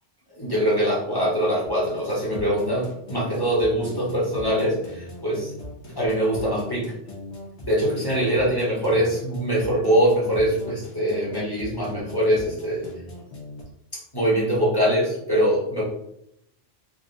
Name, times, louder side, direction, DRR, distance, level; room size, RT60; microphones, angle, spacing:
voice 1, 0.4-5.5 5.8-6.9 7.6-12.9 14.1-15.8, equal, 20° left, -7 dB, 1.1 m, -23 dB
sound 1, 1.6-13.6, left 2 dB, 70° left, 1.2 m, -39 dB
3.7 x 2.5 x 2.6 m, 0.76 s
omnidirectional pair, 1.2 m